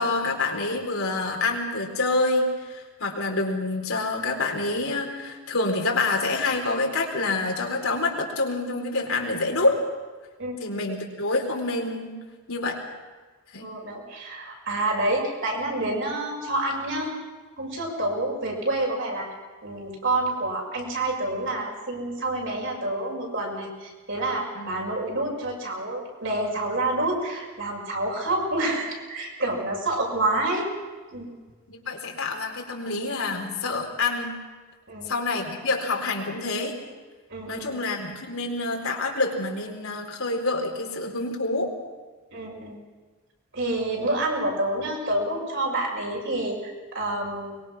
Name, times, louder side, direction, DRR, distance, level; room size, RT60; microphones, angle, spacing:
voice 1, 0.0-9.8 10.6-12.2 12.5-12.8 13.5-13.7 24.5-24.7 31.7-34.4 35.1-36.8 37.5-41.7, left 3 dB, 70° left, 1 dB, 4.2 m, -27 dB
voice 2, 10.4-10.8 13.6-17.1 17.6-19.3 19.6-30.7 31.1-31.3 34.9-35.1 37.3-37.7 42.3-42.8 43.5-47.6, right 2 dB, 60° right, -1 dB, 6.9 m, -28 dB
23.5 x 22.0 x 6.1 m, 1.4 s
head